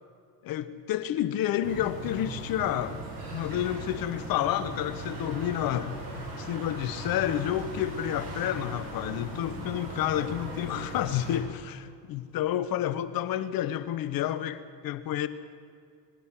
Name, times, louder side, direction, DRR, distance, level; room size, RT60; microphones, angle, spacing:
voice 1, 0.4-3.0 3.3-5.9 6.4-15.3, left 11 dB, 45° left, 1.0 m, -30 dB
sound 1, 1.6-11.4, right 1 dB, 50° right, 7.0 m, -38 dB
21.0 x 16.5 x 7.6 m
figure-of-eight pair, 65°, 49 cm